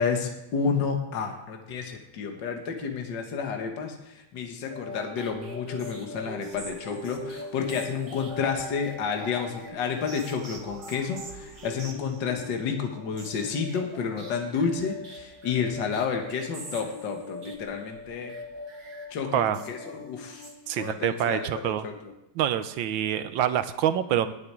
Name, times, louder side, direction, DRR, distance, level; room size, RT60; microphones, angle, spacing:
voice 1, 0.0-18.4 19.1-20.5 20.8-22.1, left 6 dB, 60° left, 3 dB, 2.0 m, -30 dB
sound 1, 4.7-21.1, left 1 dB, 50° right, 2.3 m, -42 dB
voice 2, 20.7-21.9 22.4-24.3, right 10 dB, 75° right, 12 dB, 1.4 m, -26 dB
10.5 x 7.9 x 9.6 m, 0.93 s
omnidirectional pair, 2.2 m